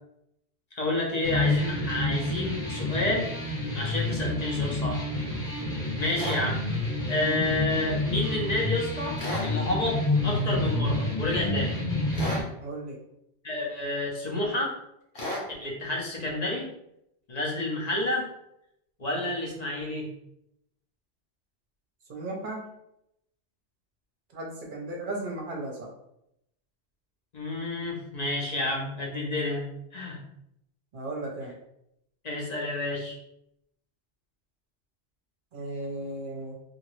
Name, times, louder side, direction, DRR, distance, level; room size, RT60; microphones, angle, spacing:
voice 1, 0.7-3.3 3.7-5.0 6.0-6.6 7.1-11.8 13.4-14.8 15.6-16.7 17.3-18.3 19.0-20.1 27.3-29.6 29.9-30.2 32.2-33.2, left 2 dB, 45° left, -2 dB, 0.7 m, -29 dB
sound 1, 1.2-12.4, left 1 dB, 5° left, 0.8 m, -29 dB
sound 2, 6.1-6.4 9.2-9.5 12.1-12.5 15.2-15.5, left 1 dB, 60° left, 1.1 m, -32 dB
voice 2, 12.6-13.0 22.1-22.7 24.3-25.9 30.9-31.5 35.5-36.6, right 2 dB, 55° right, -1 dB, 0.8 m, -35 dB
2.8 x 2.5 x 3.0 m, 0.79 s
omnidirectional pair, 1.1 m